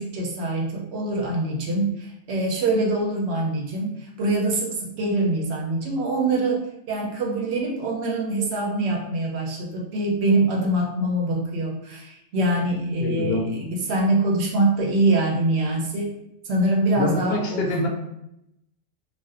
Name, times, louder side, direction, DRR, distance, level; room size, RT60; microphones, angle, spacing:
voice 1, 0.0-16.1 16.4-17.9, right 2 dB, 65° right, -1 dB, 0.8 m, -24 dB
voice 2, 13.0-13.5 17.0-17.9, left 2 dB, 65° left, 1 dB, 0.6 m, -25 dB
2.5 x 2.2 x 2.3 m, 0.82 s
omnidirectional pair, 1.3 m